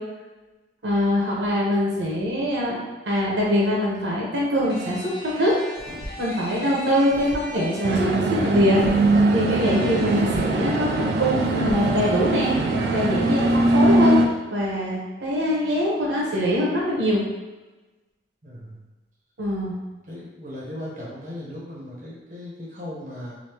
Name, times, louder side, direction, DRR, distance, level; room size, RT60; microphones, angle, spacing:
voice 1, 0.8-2.8 3.0-5.5 6.2-8.8 9.3-12.5 12.9-14.2 14.5-17.2 19.4-19.7, equal, 85° right, -4 dB, 1.0 m, -23 dB
sound 1, 4.6-8.3 9.6-10.5, equal, 55° left, 0.8 m, -39 dB
sound 2, 5.8-6.3 7.1-7.5 8.8-9.0 10.2-10.5 11.4-11.9, equal, 75° left, 1.4 m, -36 dB
sound 3, 7.8-14.3, right 2 dB, 60° right, 0.3 m, -21 dB
voice 2, 18.4-18.8 20.1-23.3, left 1 dB, 45° right, -6 dB, 0.8 m, -37 dB
3.3 x 2.7 x 2.9 m, 1.1 s
head